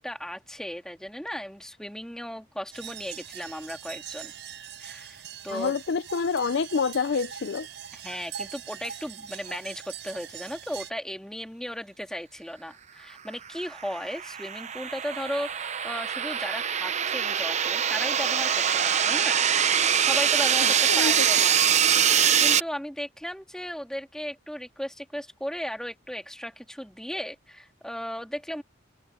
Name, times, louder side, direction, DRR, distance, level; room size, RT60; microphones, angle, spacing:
voice 1, 0.0-4.3 4.8-5.2 5.4-5.7 7.9-18.5 18.8-19.4 19.8-20.7 21.0-21.6 22.3-28.6, equal, 5° left, 2.2 m, -36 dB
sound 1, 2.7-10.9, right 8 dB, 60° right, 5.3 m, -42 dB
voice 2, 5.5-7.7 20.6-21.3, left 5 dB, 60° left, 0.4 m, -27 dB
sound 2, 13.6-22.6, right 8 dB, 35° right, 0.7 m, -24 dB
head